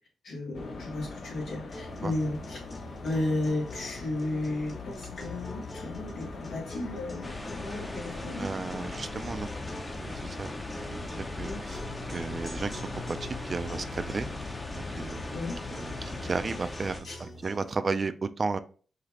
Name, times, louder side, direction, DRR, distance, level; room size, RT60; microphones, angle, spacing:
voice 1, 0.2-2.6 3.0-8.5 11.4-11.6 15.3-15.6 17.1-17.2, left 2 dB, 80° left, -2 dB, 2.0 m, -34 dB
sound 1, 0.5-16.6, left 4 dB, 65° left, 0.7 m, -42 dB
sound 2, 1.7-17.7, left 1 dB, 35° left, 1.3 m, -45 dB
sound 3, 7.2-17.0, left 1 dB, 20° left, 0.7 m, -40 dB
voice 2, 8.2-9.5 10.0-10.5 10.9-11.8 12.1-14.3 14.7-15.2 15.8-18.6, right 4 dB, 40° right, 11 dB, 0.4 m, -34 dB
5.0 x 2.8 x 2.9 m, 0.40 s
cardioid pair, 80°, 0 cm